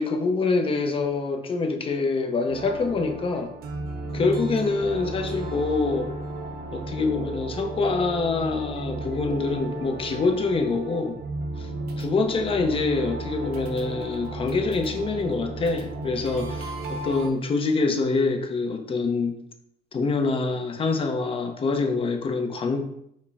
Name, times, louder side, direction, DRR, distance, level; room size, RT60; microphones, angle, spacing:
voice 1, 0.0-3.5 4.1-6.1 6.7-11.2 11.6-11.7 12.0-19.4 19.9-22.8, left 3 dB, 30° left, 4 dB, 0.7 m, -25 dB
sound 1, 2.5-17.3, right 2 dB, 70° right, 0.7 m, -34 dB
5.0 x 2.1 x 4.0 m, 0.74 s
cardioid pair, 110°, 17 cm